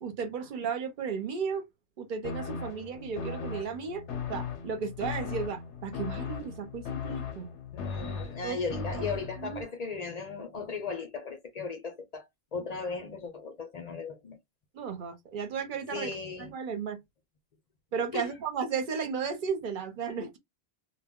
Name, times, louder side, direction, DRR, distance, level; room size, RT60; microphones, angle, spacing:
voice 1, 0.0-1.6 2.0-4.0 4.3-7.5 8.4-8.9 9.4-9.6 14.7-16.1 16.4-17.0 17.9-20.4, right 6 dB, 55° right, 0.8 m, -34 dB
sound 1, 2.2-9.6, left 6 dB, 85° left, 0.9 m, -37 dB
voice 2, 7.7-12.3 12.5-14.4 15.9-16.5 18.1-18.3, left 4 dB, 50° left, 0.5 m, -37 dB
2.1 x 2.0 x 3.5 m
omnidirectional pair, 1.1 m